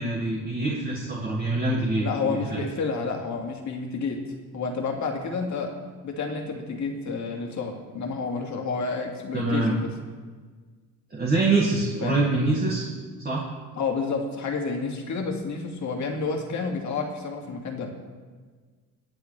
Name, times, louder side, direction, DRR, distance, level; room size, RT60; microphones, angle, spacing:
voice 1, 0.0-2.6 9.3-9.7 11.1-12.9 13.2-13.5, right 3 dB, 25° right, -3 dB, 1.9 m, -25 dB
voice 2, 2.0-4.2 4.5-5.7 6.0-9.9 12.0-12.3 13.7-17.9, left 4 dB, 50° left, 1 dB, 2.2 m, -30 dB
23.0 x 8.5 x 3.3 m, 1.5 s
cardioid pair, 115°, 36 cm